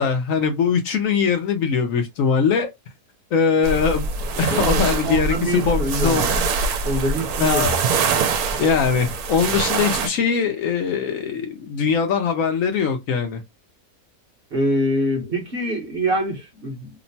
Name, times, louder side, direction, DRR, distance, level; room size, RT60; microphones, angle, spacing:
voice 1, 0.0-2.7 3.3-4.1 4.4-6.3 7.4-7.8 8.6-13.4, left 6 dB, 70° left, 0.9 m, -21 dB
sound 1, 3.6-10.1, right 4 dB, 80° right, 1.1 m, -23 dB
voice 2, 4.5-6.3 6.8-7.7 14.5-16.9, right 1 dB, 45° right, 0.8 m, -25 dB
2.9 x 2.1 x 2.6 m
omnidirectional pair, 1.6 m